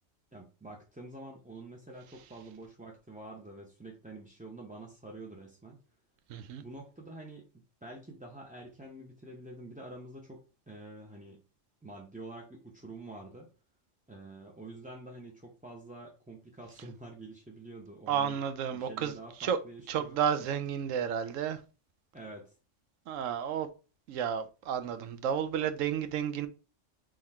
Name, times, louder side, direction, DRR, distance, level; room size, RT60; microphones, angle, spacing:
voice 1, 0.3-5.8 6.6-7.5 7.8-11.4 11.8-13.5 14.1-18.4 18.7-20.5 22.1-22.5, right 2 dB, 10° right, 0.5 m, -47 dB
voice 2, 6.3-6.6 18.1-19.1 19.4-19.6 19.9-21.6 23.1-23.7 24.1-26.5, right 8 dB, 85° right, 1.0 m, -31 dB
3.9 x 3.1 x 4.2 m
omnidirectional pair, 1.3 m